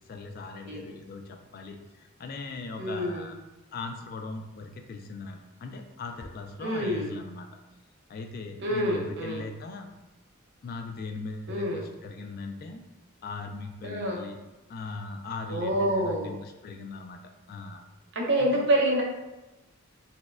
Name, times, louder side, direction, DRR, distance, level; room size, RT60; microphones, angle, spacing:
voice 1, 0.1-3.4 3.7-7.5 8.1-9.9 10.6-12.8 13.2-14.4 14.7-17.2 17.5-17.8 18.4-18.7, left 3 dB, 45° left, 5 dB, 0.3 m, -39 dB
voice 2, 2.8-3.3 6.6-7.1 8.6-9.4 11.5-11.8 13.8-14.2 15.5-16.3 18.1-19.0, right 1 dB, 55° right, -1 dB, 0.7 m, -27 dB
4.1 x 2.2 x 2.4 m, 1.0 s
head